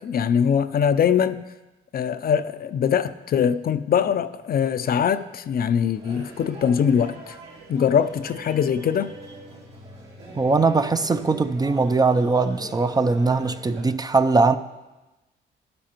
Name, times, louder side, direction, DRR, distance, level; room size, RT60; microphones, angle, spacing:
voice 1, 0.0-1.4 1.9-7.4 7.7-9.1, left 8 dB, 50° left, 0.5 m, -22 dB
sound 1, 5.9-13.8, right 2 dB, 85° right, 4.0 m, -42 dB
voice 2, 10.4-14.6, right 3 dB, 20° right, 0.4 m, -20 dB
12.0 x 11.5 x 3.0 m
cardioid pair, 90°, 20 cm